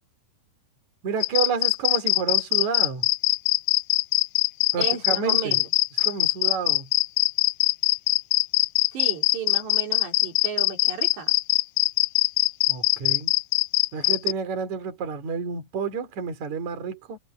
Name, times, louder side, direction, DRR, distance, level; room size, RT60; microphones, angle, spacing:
voice 1, 1.0-3.1 4.7-5.6 6.0-6.9 12.7-13.3 13.9-17.2, right 6 dB, 45° right, 4.4 m, -30 dB
sound 1, 1.2-14.3, left 23 dB, 85° left, 2.5 m, -22 dB
voice 2, 4.8-5.7 8.9-11.3, right 6 dB, 85° right, 6.8 m, -34 dB
omnidirectional pair, 4.8 m